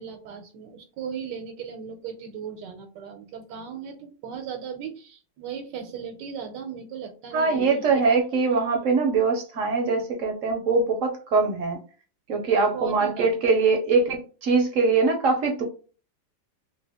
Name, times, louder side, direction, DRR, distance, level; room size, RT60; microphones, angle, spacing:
voice 1, 0.0-8.0 12.7-13.3, right 7 dB, 80° right, 5 dB, 1.2 m, -37 dB
voice 2, 7.3-11.8 12.3-15.6, right 4 dB, 60° right, 2 dB, 0.8 m, -22 dB
2.8 x 2.8 x 3.4 m, 0.37 s
omnidirectional pair, 1.9 m